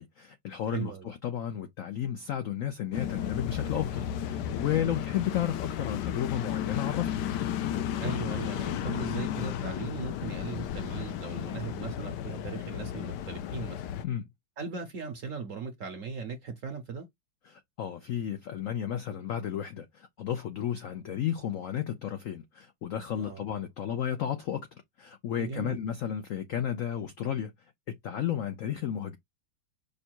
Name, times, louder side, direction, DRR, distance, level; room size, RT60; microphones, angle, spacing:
voice 1, 0.0-7.2 14.0-14.2 17.5-24.7 25.0-27.5 27.9-29.2, left 10 dB, 90° left, 0.7 m, -33 dB
voice 2, 0.7-1.1 8.0-13.8 14.6-17.1 23.1-23.5 25.4-25.8, right 5 dB, 65° right, 0.8 m, -38 dB
sound 1, 2.9-14.0, left 10 dB, 70° left, 1.1 m, -33 dB
5.4 x 2.2 x 4.4 m
omnidirectional pair, 2.1 m